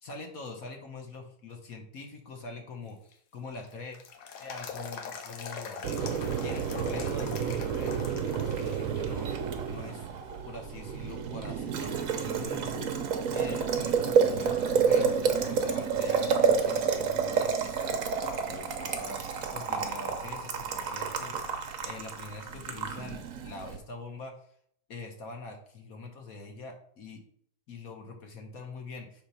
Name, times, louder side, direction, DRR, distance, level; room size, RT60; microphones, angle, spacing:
voice 1, 0.0-4.0 4.4-5.8 6.4-9.3 9.7-10.1 10.5-13.0 13.3-24.5 24.9-27.2 27.7-29.2, left 3 dB, 50° left, 3 dB, 1.2 m, -44 dB
sound 1, 2.9-9.0 9.4-9.5 10.2-10.7 11.2-11.3 11.8-13.0 13.3-13.4 16.8-16.9 19.9-20.0, left 6 dB, 80° left, 1.8 m, -43 dB
Boiling, 5.8-23.8, right 6 dB, 60° right, 0.9 m, -29 dB
7.1 x 3.7 x 5.5 m, 0.65 s
omnidirectional pair, 2.4 m